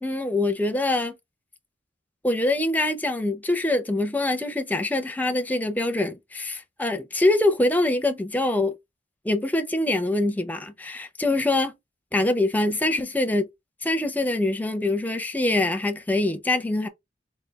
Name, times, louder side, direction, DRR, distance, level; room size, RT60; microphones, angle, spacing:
voice 1, 0.0-1.2 2.2-8.7 9.2-11.7 12.1-13.5 13.8-16.9, left 2 dB, 10° left, 0.5 m, -24 dB
3.5 x 2.2 x 3.8 m
head